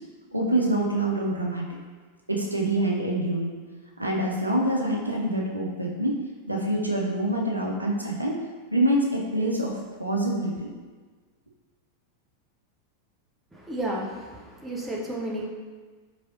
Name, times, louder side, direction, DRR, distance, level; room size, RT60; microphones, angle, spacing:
voice 1, 0.3-1.6 2.3-3.6 4.0-6.2 6.5-8.4 8.7-9.7 10.0-10.7, right 1 dB, 85° right, -2 dB, 0.5 m, -25 dB
voice 2, 13.5-15.5, right 1 dB, 5° right, -4 dB, 0.7 m, -32 dB
4.6 x 3.2 x 2.5 m, 1.4 s
figure-of-eight pair, 90°, 0 cm